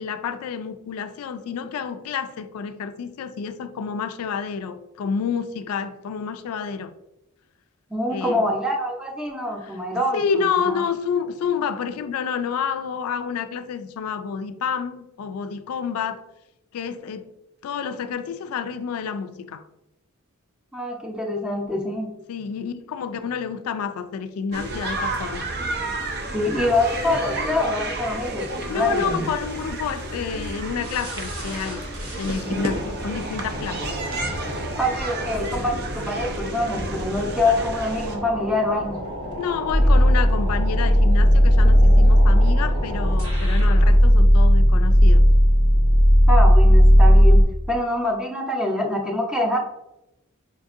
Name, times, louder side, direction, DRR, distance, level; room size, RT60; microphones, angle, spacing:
voice 1, 0.0-6.9 8.1-8.5 10.1-16.2 16.7-17.3 17.6-19.6 22.3-25.5 28.7-31.8 32.2-33.9 39.4-45.2, left 6 dB, 85° left, 0.3 m, -29 dB
voice 2, 7.9-10.8 20.7-22.1 26.3-29.3 34.8-39.0 46.3-49.6, left 1 dB, 5° right, 0.6 m, -25 dB
sound 1, 24.5-38.2, right 2 dB, 50° right, 0.5 m, -31 dB
sound 2, 30.8-44.0, equal, 75° right, 1.0 m, -34 dB
sound 3, 39.7-47.4, equal, 35° left, 0.7 m, -14 dB
5.1 x 2.6 x 2.4 m
head